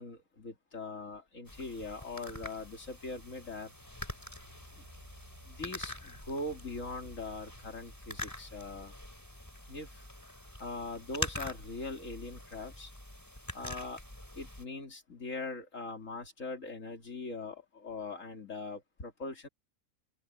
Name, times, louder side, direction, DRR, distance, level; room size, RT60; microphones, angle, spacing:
voice 1, 0.0-3.7 5.4-8.9 9.7-10.1 10.6-12.9 13.5-14.0 14.4-19.5, left 3 dB, 45° left, 3.4 m, -41 dB
sound 1, 1.5-14.6, left 1 dB, 10° left, 3.7 m, -45 dB
sound 2, 2.5-10.8, right 1 dB, 20° right, 5.0 m, -60 dB
open air
omnidirectional pair, 2.0 m